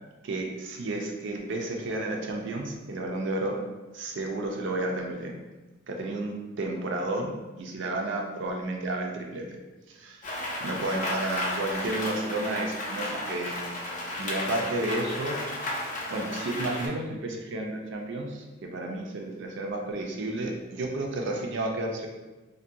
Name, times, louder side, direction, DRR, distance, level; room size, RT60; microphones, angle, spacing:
voice 1, 0.2-3.6 3.9-5.3 5.9-9.6 9.9-10.2 10.6-13.7 14.2-15.4 16.1-18.4 18.7-22.1, right 2 dB, 65° right, 2 dB, 0.4 m, -32 dB
Rain, 10.2-16.9, left 1 dB, 40° left, 0.4 m, -33 dB
2.7 x 2.1 x 2.5 m, 1.1 s
head